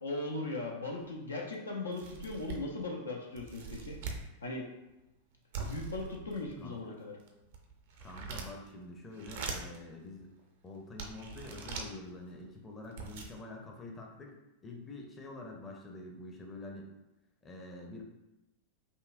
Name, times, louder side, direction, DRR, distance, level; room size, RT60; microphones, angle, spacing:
voice 1, 0.0-4.0 4.4-4.7 5.6-7.1, left 2 dB, 75° left, -1 dB, 0.6 m, -38 dB
sound 1, 1.0-1.1 1.5-1.6 1.9-2.8 3.4-4.3 5.5-6.6 7.2-8.7 9.1-9.8 10.4-10.5 11.0-11.9 12.6-12.7 12.8-13.3, right 5 dB, 55° right, 0.6 m, -42 dB
voice 2, 6.6-7.0 8.0-10.3 10.6-14.3 14.6-16.9 17.4-18.0, left 2 dB, 20° left, 0 dB, 0.7 m, -46 dB
5.4 x 2.2 x 2.5 m, 0.97 s
figure-of-eight pair, 90°, 0 cm